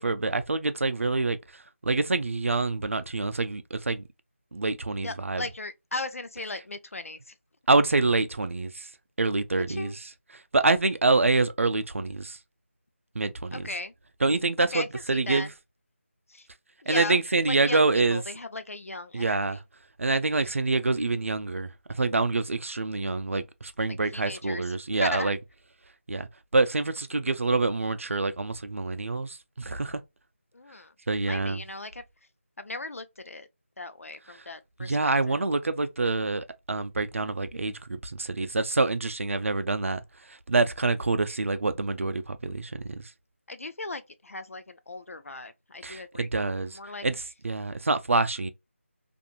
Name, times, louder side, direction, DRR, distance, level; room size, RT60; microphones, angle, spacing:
voice 1, 0.0-4.0 4.5-5.4 7.7-8.9 9.2-9.9 10.5-12.4 13.1-13.6 14.2-15.5 16.9-18.2 19.1-19.6 20.0-25.4 26.1-26.3 26.5-30.0 31.1-31.6 34.8-40.0 40.3-43.1 45.8-46.7 47.0-47.2 47.4-48.5, right 3 dB, 70° right, 0.5 m, -26 dB
voice 2, 5.0-7.3 9.7-10.0 13.5-13.9 14.6-15.5 16.3-16.5 16.8-17.2 17.4-19.6 24.1-24.8 25.0-25.3 30.5-30.9 31.2-32.0 32.6-33.5 33.8-35.4 43.5-46.3 46.7-47.1, left 2 dB, 85° left, 0.5 m, -37 dB
2.6 x 2.5 x 2.8 m
figure-of-eight pair, 170°, 7 cm